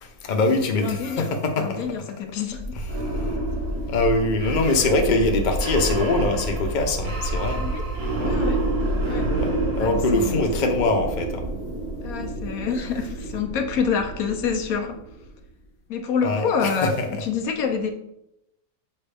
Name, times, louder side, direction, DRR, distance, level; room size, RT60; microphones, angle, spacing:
voice 1, 0.0-1.8 2.9-3.4 3.9-7.7 8.2-8.4 9.3-9.5 9.8-11.5 16.2-17.2, left 2 dB, 35° left, 3 dB, 0.9 m, -23 dB
voice 2, 0.7-1.3 1.6-2.8 7.6-7.8 8.2-8.6 9.0-9.3 9.8-10.4 12.0-15.0 15.9-17.9, left 6 dB, 75° left, 6 dB, 1.1 m, -27 dB
sound 1, 2.5-15.3, right 1 dB, 75° right, 2.3 m, -28 dB
7.3 x 5.3 x 3.4 m, 0.83 s
omnidirectional pair, 1.6 m